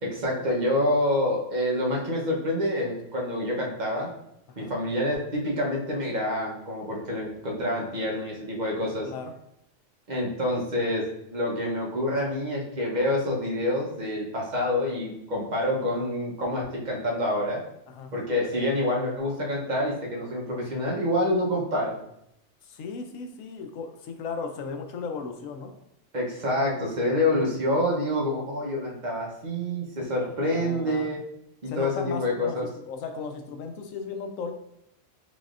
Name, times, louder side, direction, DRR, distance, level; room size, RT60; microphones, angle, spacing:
voice 1, 0.0-4.1 4.6-9.1 10.1-11.0 11.3-17.6 18.1-22.0 26.1-31.2 31.6-32.7, left 1 dB, 40° right, -2 dB, 0.9 m, -27 dB
voice 2, 22.6-25.7 30.2-31.2 31.7-34.5, left 5 dB, 85° left, 6 dB, 1.0 m, -36 dB
4.0 x 3.5 x 2.4 m, 0.79 s
omnidirectional pair, 1.3 m